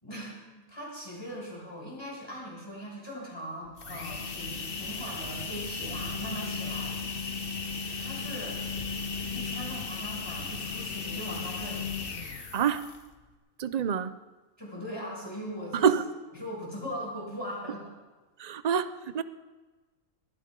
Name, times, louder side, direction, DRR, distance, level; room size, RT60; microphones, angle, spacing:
voice 1, 0.0-7.0 8.0-8.6 9.3-11.8 14.6-15.9 16.4-17.8, equal, 15° left, -5 dB, 6.4 m, -40 dB
sound 1, 3.7-13.1, left 5 dB, 40° left, 1.3 m, -35 dB
voice 2, 12.5-12.8 13.6-14.2 15.7-16.1 18.4-19.2, right 7 dB, 60° right, 13 dB, 0.4 m, -27 dB
21.0 x 16.0 x 3.7 m, 1.3 s
omnidirectional pair, 1.5 m